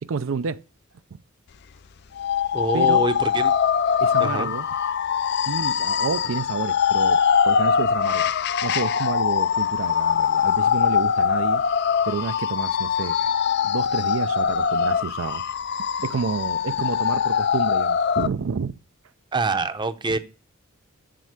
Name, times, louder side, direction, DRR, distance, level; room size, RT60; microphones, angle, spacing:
voice 1, 0.0-0.6 2.7-3.0 4.0-4.7 5.5-8.3 8.6-11.6 12.1-13.2 13.6-15.4 16.0-18.7, right 5 dB, 65° right, 0.4 m, -29 dB
sound 1, 2.2-18.3, left 7 dB, 50° left, 0.4 m, -22 dB
voice 2, 2.5-3.5 4.2-4.5 19.3-20.2, right 3 dB, 20° right, 0.7 m, -25 dB
7.7 x 7.4 x 8.1 m
head